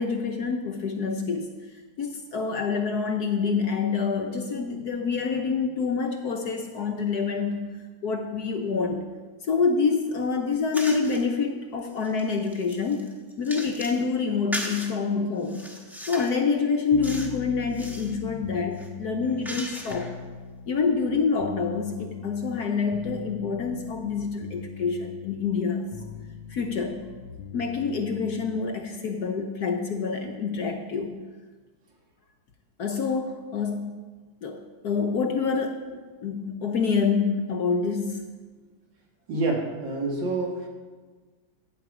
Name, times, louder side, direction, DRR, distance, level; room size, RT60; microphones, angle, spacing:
voice 1, 0.0-1.5 2.0-7.7 8.0-9.1 9.5-13.1 13.4-15.7 16.1-20.1 20.7-25.9 26.5-27.0 27.5-31.2 32.8-34.0 34.4-38.2, left 5 dB, 60° left, 4 dB, 1.2 m, -27 dB
sound 1, 10.7-11.2 11.8-14.0 14.5-14.9 15.4-16.4 17.0-17.4 17.7-18.1 18.7-20.2, equal, ahead, 0.9 m, -37 dB
sound 2, 16.9-28.8, left 8 dB, 80° left, 1.4 m, -41 dB
voice 2, 39.3-40.7, right 2 dB, 65° right, 0 dB, 2.6 m, -27 dB
15.5 x 8.0 x 4.9 m, 1.4 s
omnidirectional pair, 2.2 m